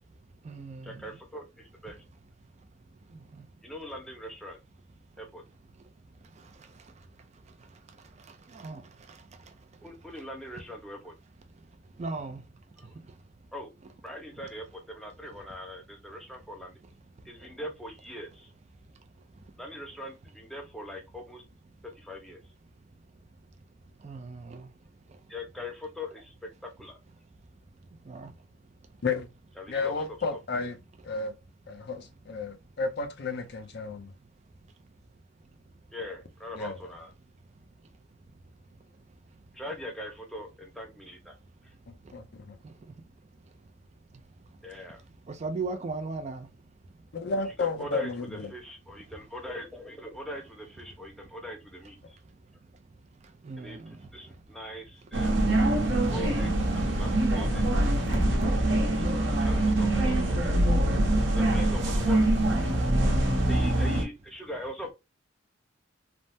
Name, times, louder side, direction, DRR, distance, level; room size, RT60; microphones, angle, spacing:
voice 1, 0.5-1.0 8.5-8.8 12.0-12.4 24.0-24.7 28.1-28.3 45.3-46.5 53.4-53.9 59.5-59.8, right 3 dB, 35° right, 0.4 m, -36 dB
voice 2, 1.0-1.4 1.8-2.0 3.6-4.6 5.2-5.4 9.8-11.1 12.8-12.9 13.5-13.7 14.0-16.7 17.2-18.5 19.6-21.4 22.0-22.4 25.3-26.3 26.8-27.0 29.6-29.9 30.3-30.4 35.9-37.1 39.5-41.4 44.6-45.0 47.6-52.2 53.6-55.4 56.1-58.5 59.0-59.1 59.4-60.4 61.3-62.4 63.5-64.9, left 1 dB, ahead, 0.7 m, -41 dB
voice 3, 29.7-30.8 31.0-31.3 31.7-34.1 36.5-36.8 41.9-42.6 47.1-48.5, left 4 dB, 55° left, 0.5 m, -32 dB
sound 1, 55.1-64.0, right 1 dB, 65° right, 0.9 m, -24 dB
3.3 x 2.0 x 2.6 m
head